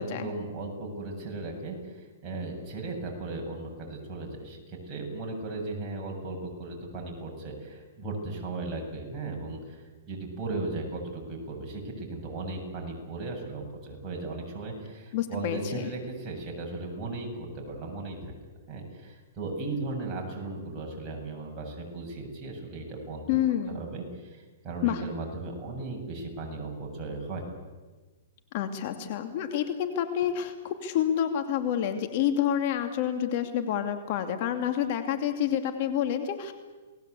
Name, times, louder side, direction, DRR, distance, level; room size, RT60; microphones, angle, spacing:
voice 1, 0.0-9.8 10.1-18.2 18.7-23.3 23.7-27.5, right 2 dB, 20° right, -1 dB, 7.8 m, -36 dB
voice 2, 15.1-15.9 23.3-23.8 24.8-25.0 28.5-36.5, left 10 dB, 45° left, 7 dB, 2.5 m, -28 dB
28.5 x 20.0 x 8.4 m, 1.3 s
hypercardioid pair, 145°, 0 cm